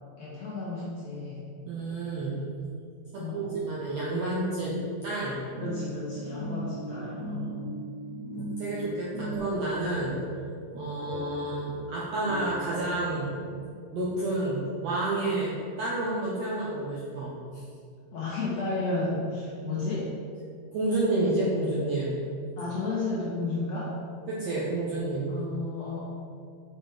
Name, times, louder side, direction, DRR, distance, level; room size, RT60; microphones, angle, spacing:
voice 1, 0.2-1.4 3.1-3.6 5.6-7.7 18.1-20.1 22.6-24.0 25.3-26.0, left 3 dB, 65° left, -7 dB, 1.7 m, -33 dB
voice 2, 1.7-2.4 3.1-4.8 5.0-5.5 8.4-10.2 10.7-13.3 13.9-17.6 19.6-19.8 20.7-22.2 24.3-25.4, right 2 dB, 70° right, -6 dB, 1.6 m, -30 dB
sound 1, 5.5-13.8, right 2 dB, 40° right, 1.4 m, -39 dB
6.1 x 5.8 x 4.9 m, 2.4 s
omnidirectional pair, 4.2 m